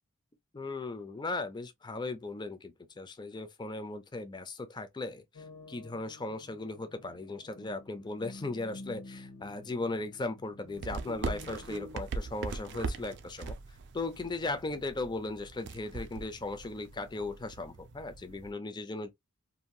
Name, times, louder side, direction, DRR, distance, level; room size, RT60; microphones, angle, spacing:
voice 1, 0.5-13.6 13.9-19.1, left 2 dB, 20° left, 0.4 m, -37 dB
sound 1, 5.3-12.0, left 2 dB, 75° left, 0.8 m, -50 dB
sound 2, 10.7-18.5, right 4 dB, 50° right, 0.4 m, -41 dB
2.9 x 2.6 x 2.2 m
head